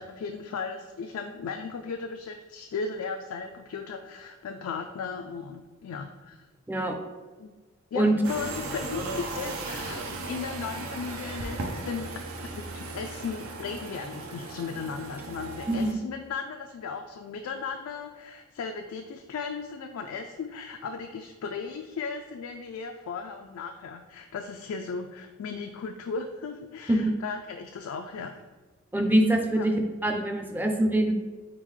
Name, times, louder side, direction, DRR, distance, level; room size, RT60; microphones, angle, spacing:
voice 1, 0.0-6.5 7.4-7.6 7.9-12.1 12.5-28.4 29.5-29.7, left 5 dB, 90° left, 5 dB, 0.3 m, -36 dB
sound 1, 8.2-15.9, right 2 dB, 85° right, 0.6 m, -36 dB
voice 2, 28.9-31.1, right 1 dB, 10° right, 4 dB, 0.4 m, -24 dB
4.2 x 3.7 x 3.1 m, 1.3 s
head